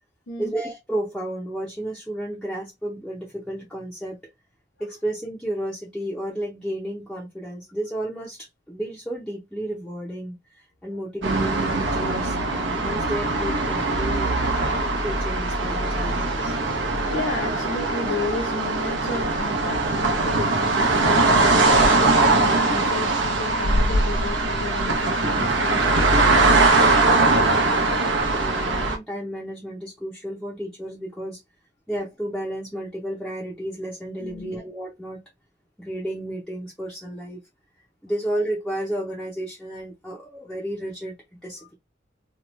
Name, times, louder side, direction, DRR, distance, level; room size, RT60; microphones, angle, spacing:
voice 1, 0.4-4.2 4.8-14.3 15.0-16.6 28.4-31.4 31.9-35.2 35.8-37.4 38.0-41.2 41.4-41.7, right 1 dB, 5° left, 0.6 m, -32 dB
sound 1, 11.2-29.0, right 2 dB, 70° right, 0.8 m, -21 dB
voice 2, 17.1-21.7 21.9-26.8 34.2-34.5, left 3 dB, 70° left, 0.9 m, -33 dB
2.9 x 2.3 x 3.0 m
head